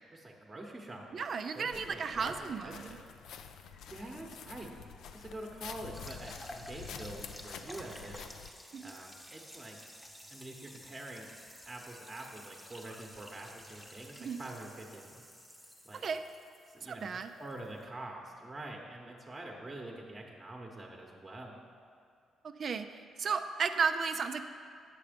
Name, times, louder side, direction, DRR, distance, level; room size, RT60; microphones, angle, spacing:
voice 1, 0.1-1.3 1.5-3.0 3.8-8.4 8.8-9.8 10.3-11.3 11.7-15.2 15.8-16.0 16.7-21.5, right 1 dB, 20° right, 0 dB, 1.0 m, -46 dB
voice 2, 1.1-3.0 8.7-8.9 14.2-14.4 16.0-16.2 16.8-17.3 22.4-22.9 23.2-24.5, right 5 dB, 50° right, 8 dB, 0.4 m, -34 dB
sound 1, 1.7-8.5, left 7 dB, 80° left, 0.4 m, -48 dB
sound 2, 5.9-17.8, equal, 5° left, 0.9 m, -52 dB
8.3 x 6.7 x 5.1 m, 2.4 s
cardioid pair, 90°, 0 cm